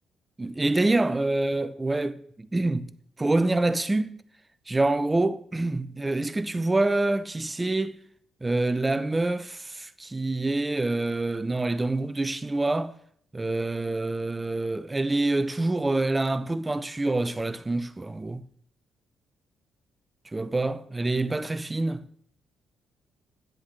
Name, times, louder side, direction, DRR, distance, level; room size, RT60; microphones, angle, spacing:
voice 1, 0.4-2.9 3.2-4.2 4.7-8.0 8.4-12.9 13.3-18.4 20.3-22.0, right 2 dB, 15° right, 0.6 m, -26 dB
10.5 x 7.8 x 3.2 m
cardioid pair, 90°, 0 cm